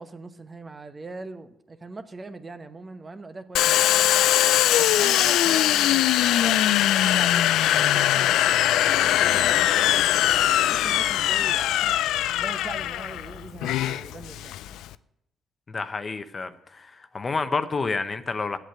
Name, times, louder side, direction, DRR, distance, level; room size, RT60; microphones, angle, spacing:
voice 1, 0.0-3.9 4.8-8.5 8.8-10.3 10.7-12.0 12.4-14.9, right 3 dB, 30° right, 10 dB, 0.9 m, -41 dB
Domestic sounds home sounds, 3.5-14.9, left 13 dB, 90° left, 0.4 m, -21 dB
voice 2, 15.7-18.6, left 4 dB, 35° left, 10 dB, 0.8 m, -29 dB
8.6 x 8.1 x 8.9 m, 0.80 s
cardioid pair, 90°, 0 cm